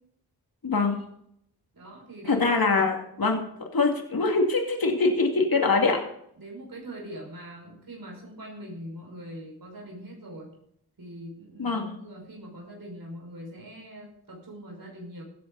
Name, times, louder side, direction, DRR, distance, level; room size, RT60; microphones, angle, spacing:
voice 1, 0.6-1.0 2.3-3.4 3.7-6.0 11.6-11.9, left 3 dB, 65° left, 2 dB, 2.5 m, -23 dB
voice 2, 1.7-2.8 6.4-10.5 11.0-15.2, right 1 dB, 60° right, -1 dB, 5.6 m, -42 dB
15.5 x 13.0 x 4.1 m, 0.70 s
wide cardioid pair, 75°, 39 cm